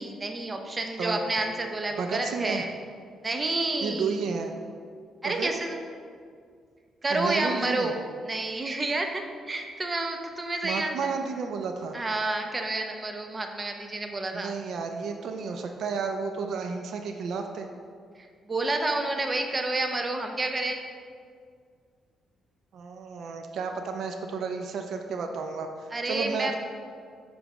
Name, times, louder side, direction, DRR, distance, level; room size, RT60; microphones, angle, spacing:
voice 1, 0.0-2.7 3.2-4.1 5.2-5.8 7.0-8.0 8.3-10.9 11.9-14.5 18.5-20.8 25.9-26.6, right 2 dB, 25° right, 4 dB, 0.6 m, -29 dB
voice 2, 2.0-2.6 3.8-4.5 5.2-5.5 7.1-7.9 10.6-12.0 14.3-17.7 22.7-26.6, right 5 dB, 70° right, 4 dB, 0.4 m, -32 dB
7.0 x 3.3 x 4.9 m, 2.1 s
cardioid pair, 100°, 0 cm